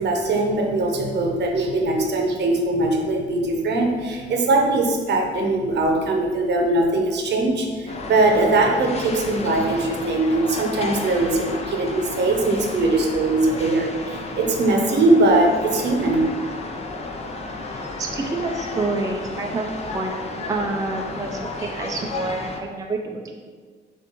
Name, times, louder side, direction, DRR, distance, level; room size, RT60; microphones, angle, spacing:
voice 1, 0.0-16.3, right 2 dB, 60° right, 2 dB, 0.8 m, -21 dB
sound 1, 7.9-22.6, left 3 dB, 30° left, 0.5 m, -33 dB
voice 2, 17.7-23.3, right 3 dB, 15° right, 2 dB, 0.4 m, -28 dB
6.7 x 2.6 x 2.9 m, 1.6 s
cardioid pair, 90°, 20 cm